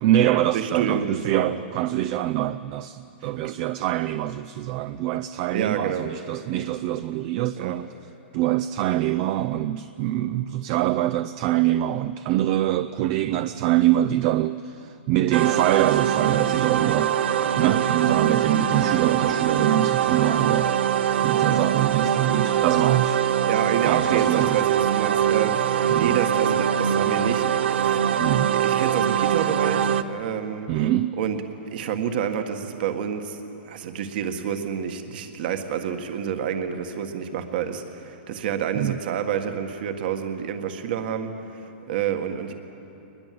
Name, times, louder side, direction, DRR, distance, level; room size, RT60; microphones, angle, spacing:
voice 1, 0.0-7.9 8.3-20.7 21.2-23.2 23.9-24.6 25.9-26.2 28.2-28.6 30.7-31.2 38.7-39.0, right 13 dB, 35° right, 0.4 m, -24 dB
voice 2, 0.5-1.6 3.4-3.5 5.5-6.1 7.6-7.8 13.3-13.5 16.8-16.9 23.5-28.2 28.6-30.7 31.2-31.4 31.7-33.4 33.7-41.3 41.9-42.5, right 8 dB, 55° right, 1.7 m, -28 dB
sound 1, 15.3-30.0, right 9 dB, 80° right, 0.9 m, -23 dB
22.0 x 21.0 x 7.8 m
hypercardioid pair, 150°, 6 cm